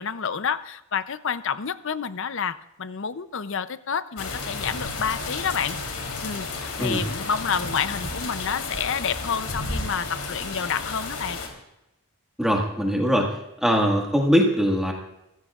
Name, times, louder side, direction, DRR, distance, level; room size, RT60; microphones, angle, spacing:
voice 1, 0.0-5.8 6.2-11.4, left 6 dB, 60° left, 13 dB, 0.6 m, -29 dB
sound 1, 4.2-11.5, left 3 dB, 90° left, 3.5 m, -32 dB
voice 2, 12.4-13.3 13.6-14.9, equal, ahead, 0 dB, 1.8 m, -21 dB
24.0 x 15.5 x 2.5 m, 0.86 s
head